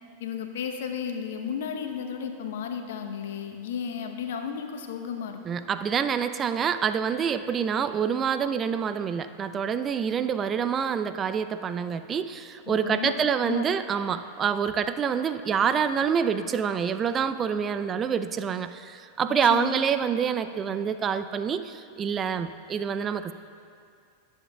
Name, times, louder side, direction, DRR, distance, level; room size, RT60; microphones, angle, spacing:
voice 1, 0.2-5.6 12.7-13.2 13.5-13.6 19.4-19.7, left 7 dB, 65° left, 6 dB, 0.8 m, -33 dB
voice 2, 5.4-23.3, right 7 dB, 30° right, 11 dB, 0.4 m, -27 dB
18.5 x 7.4 x 2.3 m, 2.3 s
figure-of-eight pair, 90°, 0 cm